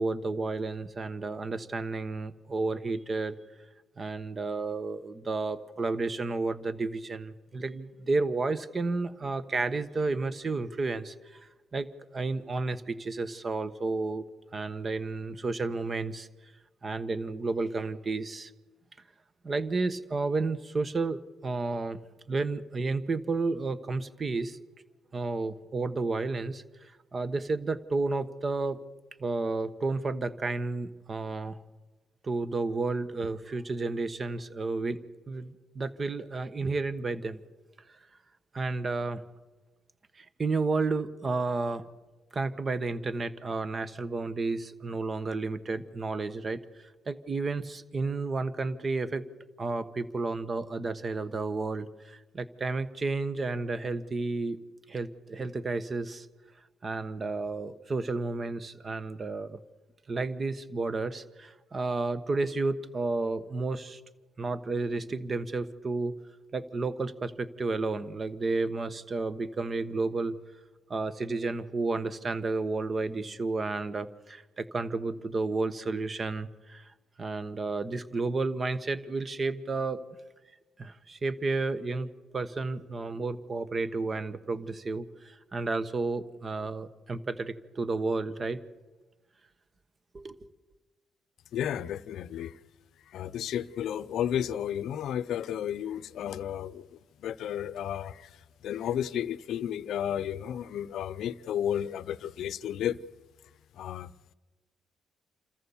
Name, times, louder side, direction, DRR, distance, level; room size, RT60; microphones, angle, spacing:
voice 1, 0.0-3.4 4.0-14.2 14.5-16.3 16.8-18.5 19.4-22.0 22.3-24.6 25.1-28.8 29.2-31.6 32.2-35.0 35.3-37.4 38.5-39.2 40.2-41.8 42.3-49.3 49.6-54.6 54.9-56.3 56.8-59.6 60.1-64.0 64.4-66.1 66.5-70.4 70.9-80.0 80.8-82.1 82.3-88.6 90.1-90.4, right 3 dB, 35° right, 1.2 m, -32 dB
voice 2, 91.5-92.6 93.1-96.9 97.2-98.3 98.6-103.0 103.8-104.1, left 10 dB, 75° left, 0.6 m, -32 dB
27.5 x 14.0 x 7.1 m
cardioid pair, 90°, 0 cm